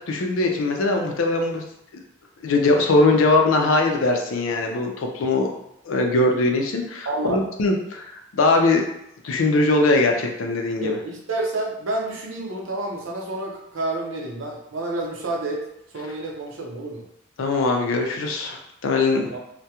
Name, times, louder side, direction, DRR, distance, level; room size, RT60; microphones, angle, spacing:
voice 1, 0.0-1.6 1.9-2.0 2.4-5.5 5.8-8.9 9.2-11.0 17.4-19.2, left 2 dB, 85° left, 3 dB, 0.4 m, -21 dB
voice 2, 7.0-7.4 10.8-15.6 15.9-17.0 19.2-19.4, right 2 dB, 75° right, -1 dB, 0.6 m, -29 dB
2.3 x 2.1 x 2.8 m, 0.81 s
head